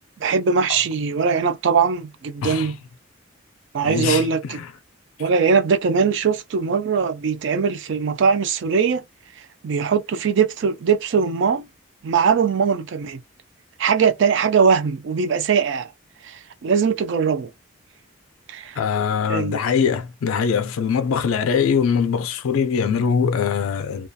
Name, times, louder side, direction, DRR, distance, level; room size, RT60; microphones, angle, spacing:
voice 1, 0.2-2.8 3.7-4.6 5.2-9.0 9.6-11.7 12.0-13.2 13.8-15.9 16.2-17.5 18.5-18.8 19.3-19.6, right 6 dB, 60° right, 0.3 m, -21 dB
voice 2, 2.4-2.7 3.8-4.7 18.8-24.1, left 6 dB, 90° left, 0.4 m, -22 dB
2.3 x 2.2 x 2.6 m
head